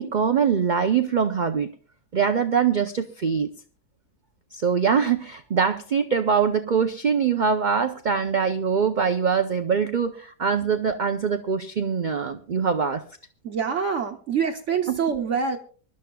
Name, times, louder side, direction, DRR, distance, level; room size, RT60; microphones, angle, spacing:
voice 1, 0.0-1.7 2.1-3.5 4.5-13.0 14.9-15.0, right 6 dB, 90° right, 8 dB, 0.4 m, -23 dB
voice 2, 13.4-15.6, right 6 dB, 55° right, 4 dB, 1.1 m, -25 dB
24.5 x 11.5 x 2.3 m, 0.41 s
omnidirectional pair, 1.6 m